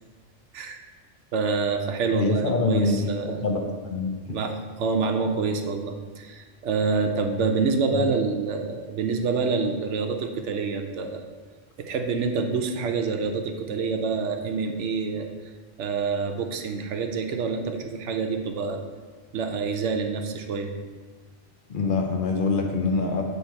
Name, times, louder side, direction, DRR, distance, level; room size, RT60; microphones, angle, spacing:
voice 1, 1.3-3.4 4.3-11.2 11.8-15.3 15.8-18.8 19.3-20.7, right 4 dB, 80° right, 5 dB, 1.0 m, -27 dB
voice 2, 2.1-3.0 3.3-4.2 7.9-8.0 21.7-23.2, left 3 dB, 55° left, 2 dB, 0.8 m, -25 dB
8.1 x 3.2 x 4.5 m, 1.4 s
omnidirectional pair, 1.2 m